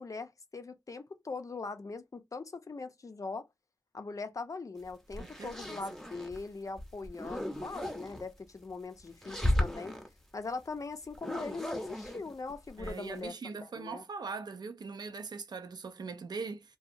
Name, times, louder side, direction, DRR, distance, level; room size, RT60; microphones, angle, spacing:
voice 1, 0.0-3.5 3.9-10.0 10.3-13.3 13.6-14.0, left 4 dB, 50° left, 0.5 m, -41 dB
sound 1, 4.8-6.4 6.8-8.2 9.1-10.1 11.1-13.2, left 1 dB, 5° left, 0.7 m, -35 dB
voice 2, 5.2-5.8 12.8-16.8, right 4 dB, 75° right, 0.4 m, -41 dB
2.8 x 2.3 x 2.5 m
wide cardioid pair, 75°, 7 cm